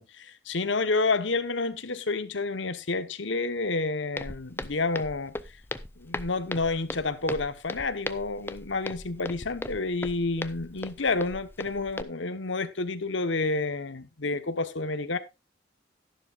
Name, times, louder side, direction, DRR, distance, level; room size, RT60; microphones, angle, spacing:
voice 1, 0.2-5.3 6.0-15.2, left 3 dB, 80° left, 1.1 m, -29 dB
Walk footsteps, 4.2-12.0, left 2 dB, 10° left, 0.5 m, -38 dB
13.0 x 11.5 x 2.4 m
head